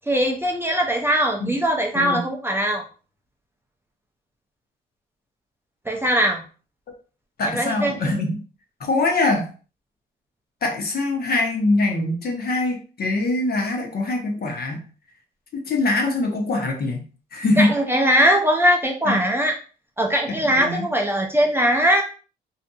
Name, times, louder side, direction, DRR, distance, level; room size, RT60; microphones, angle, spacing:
voice 1, 0.1-2.8 5.9-6.4 7.5-7.9 17.6-19.6 20.0-22.0, equal, 10° right, 0 dB, 0.4 m, -20 dB
voice 2, 7.4-8.4 8.8-9.5 10.6-14.8 15.5-17.7 19.0-19.2 20.3-20.9, left 2 dB, 50° left, 1 dB, 0.8 m, -23 dB
2.7 x 2.4 x 2.2 m, 0.37 s
cardioid pair, 90°, 20 cm